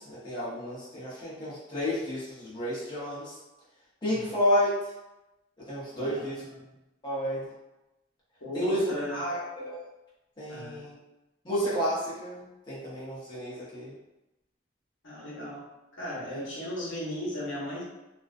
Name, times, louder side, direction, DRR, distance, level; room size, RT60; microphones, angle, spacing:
voice 1, 0.0-3.3 4.0-4.7 5.7-6.4 7.0-7.5 8.5-9.8 10.4-11.0 11.4-13.9 16.3-16.4, equal, 25° left, -10 dB, 0.7 m, -31 dB
voice 2, 5.9-6.7 8.4-9.3 10.5-10.8 15.0-15.6 16.0-17.8, left 1 dB, 75° left, -6 dB, 0.8 m, -37 dB
2.4 x 2.2 x 2.4 m, 0.96 s
head